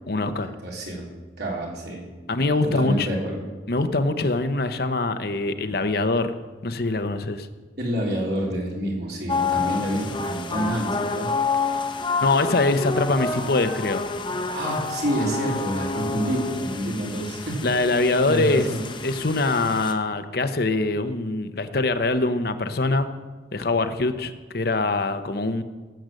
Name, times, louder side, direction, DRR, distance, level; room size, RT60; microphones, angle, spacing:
voice 1, 0.1-0.5 2.3-3.1 3.7-6.3 6.6-7.5 12.2-14.1 17.6-18.7 19.0-23.1 23.5-25.6, left 2 dB, 60° left, 9 dB, 0.9 m, -23 dB
voice 2, 0.6-1.1 1.4-2.0 2.6-3.4 7.8-11.3 14.5-17.7 18.3-18.8, right 1 dB, 60° right, -2 dB, 3.8 m, -28 dB
sound 1, 9.3-19.9, left 4 dB, 25° left, 1.0 m, -29 dB
17.0 x 7.9 x 7.7 m, 1.3 s
head